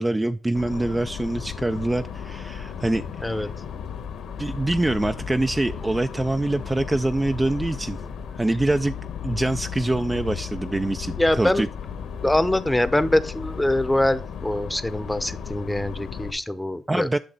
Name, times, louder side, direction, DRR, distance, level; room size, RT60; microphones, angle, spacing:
voice 1, 0.0-3.5 4.4-8.0 8.3-8.9 9.2-11.7 16.9-17.2, right 2 dB, 15° right, 9 dB, 0.4 m, -25 dB
sound 1, 0.5-16.3, left 7 dB, 75° left, 1.4 m, -35 dB
voice 2, 11.2-11.6 12.2-17.1, left 1 dB, 10° left, 14 dB, 0.7 m, -23 dB
11.0 x 5.9 x 4.0 m, 0.40 s
cardioid pair, 90°, 0 cm